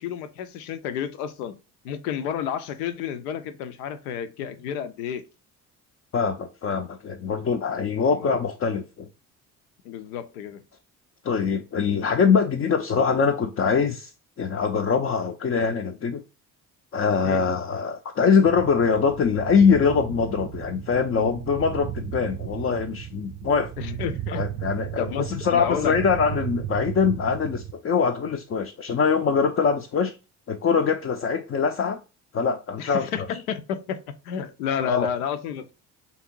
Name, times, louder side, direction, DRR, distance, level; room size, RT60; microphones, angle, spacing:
voice 1, 0.0-1.6 1.8-5.2 8.0-8.4 9.8-10.6 17.2-17.4 23.8-24.7 25.0-26.0 32.8-35.7, left 8 dB, 75° left, 0.7 m, -31 dB
voice 2, 6.1-9.1 11.2-14.1 14.4-16.2 16.9-23.7 24.3-30.2 30.5-32.0 32.3-33.1 34.8-35.1, left 5 dB, 30° left, 0.5 m, -23 dB
sound 1, 18.4-27.7, right 12 dB, 30° right, 0.4 m, -35 dB
3.4 x 2.7 x 4.4 m
figure-of-eight pair, 50°, 45 cm